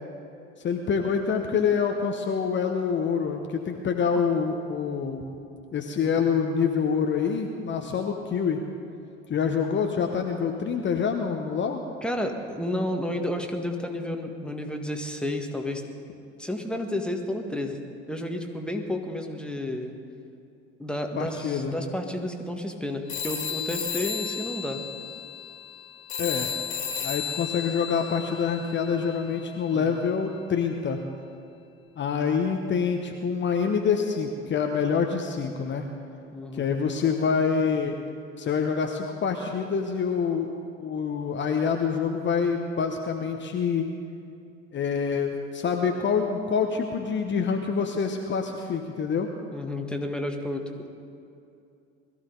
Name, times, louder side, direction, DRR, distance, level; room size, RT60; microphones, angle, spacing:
voice 1, 0.6-5.2 5.7-8.6 9.3-11.8 21.2-21.8 26.2-26.5 27.0-31.0 32.0-35.9 36.5-38.0 38.4-40.5 40.8-43.9 44.7-49.3, left 6 dB, 30° left, 4 dB, 1.1 m, -26 dB
voice 2, 12.0-15.8 16.4-17.8 18.1-19.9 20.8-24.8 29.7-30.0 36.3-36.6 49.5-50.9, left 1 dB, 5° left, 4 dB, 1.7 m, -31 dB
sound 1, 23.1-29.2, left 7 dB, 55° left, 2.3 m, -33 dB
21.0 x 14.5 x 4.0 m, 2.6 s
figure-of-eight pair, 60°, 35 cm